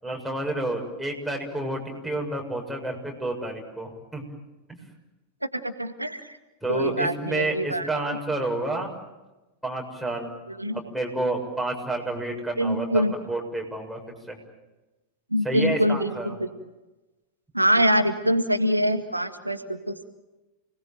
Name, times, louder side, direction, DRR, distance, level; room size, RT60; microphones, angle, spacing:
voice 1, 0.0-4.2 6.6-8.9 9.6-10.3 10.7-14.0 14.3-14.4 15.4-16.3, right 2 dB, ahead, -1 dB, 6.8 m, -30 dB
voice 2, 5.5-6.4 6.7-7.9 10.5-10.8 12.6-13.1 15.3-16.5 17.5-20.1, equal, 85° right, 9 dB, 1.8 m, -24 dB
29.0 x 20.0 x 9.1 m, 1.1 s
figure-of-eight pair, 90°, 0 cm